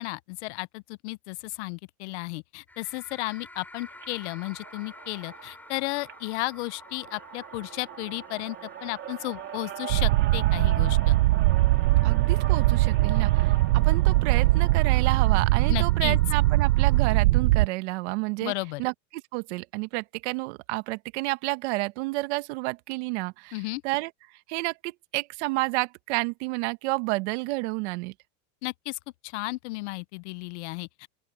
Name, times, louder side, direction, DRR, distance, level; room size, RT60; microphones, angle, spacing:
voice 1, 0.0-8.6 8.8-11.2 15.7-16.2 18.4-18.8 23.5-23.8 28.6-31.1, left 22 dB, 55° left, 0.7 m, -34 dB
sound 1, 2.7-17.2, left 1 dB, 5° left, 3.8 m, -49 dB
sound 2, 3.9-15.3, right 11 dB, 30° right, 3.8 m, -41 dB
sound 3, 9.9-17.7, right 18 dB, 80° right, 0.7 m, -21 dB
voice 2, 12.0-13.5 13.8-18.5 18.8-18.9 19.3-24.1 24.5-28.1, right 23 dB, 55° right, 1.5 m, -30 dB
open air
supercardioid pair, 150°, 40 cm